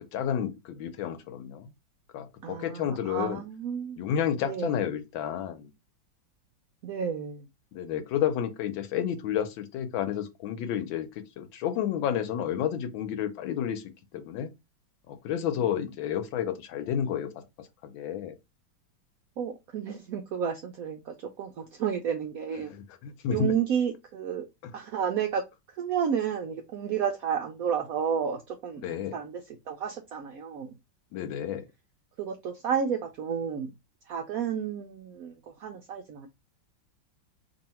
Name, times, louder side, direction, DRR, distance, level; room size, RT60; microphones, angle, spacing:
voice 1, 0.1-1.7 2.1-3.4 4.0-5.7 7.7-13.8 14.1-14.5 15.1-17.3 17.6-18.3 22.7-22.8 23.0-23.5 24.6-24.7 28.8-29.1 31.1-31.6, left 9 dB, 85° left, 1.4 m, -31 dB
voice 2, 2.4-4.0 4.4-4.8 6.8-7.5 15.5-15.6 19.4-22.7 23.3-24.5 24.7-25.4 25.7-30.7 32.2-33.7 34.1-36.3, right 7 dB, 85° right, 0.7 m, -31 dB
3.0 x 2.7 x 4.2 m
omnidirectional pair, 2.1 m